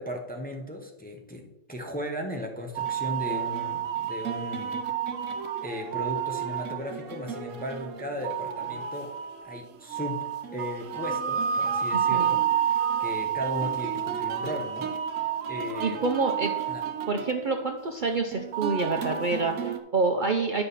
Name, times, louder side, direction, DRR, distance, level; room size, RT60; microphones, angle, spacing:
voice 1, 0.0-4.8 5.6-9.1 9.4-12.7 13.0-14.9 15.5-16.0 16.7-16.8, left 1 dB, 10° left, 2 dB, 0.7 m, -36 dB
sound 1, 2.8-19.8, right 8 dB, 70° right, 1.1 m, -30 dB
voice 2, 15.8-16.5 17.1-20.6, right 3 dB, 50° right, 3 dB, 0.6 m, -27 dB
9.7 x 5.4 x 4.1 m, 0.94 s
omnidirectional pair, 1.4 m